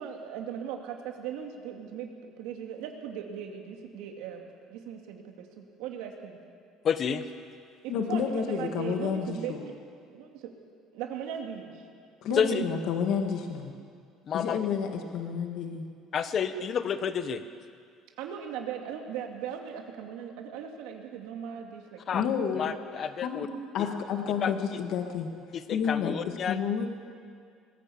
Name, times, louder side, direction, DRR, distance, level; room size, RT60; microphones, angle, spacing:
voice 1, 0.0-6.4 7.8-9.5 10.1-10.5 10.9-11.8 12.3-12.7 18.2-22.2, right 8 dB, 80° right, 2 dB, 2.2 m, -38 dB
voice 2, 6.8-7.2 12.3-12.6 14.2-14.6 16.1-17.4 22.1-22.3 22.6-23.5 24.4-24.5 25.5-26.6, left 7 dB, 30° left, 11 dB, 0.9 m, -29 dB
voice 3, 7.9-9.6 12.2-13.7 14.3-15.9 22.1-22.7 23.2-23.5 23.7-25.3 25.7-26.1 26.5-26.9, left 7 dB, 55° left, 3 dB, 1.7 m, -30 dB
20.0 x 15.5 x 8.5 m, 2.2 s
cardioid pair, 175°, 0 cm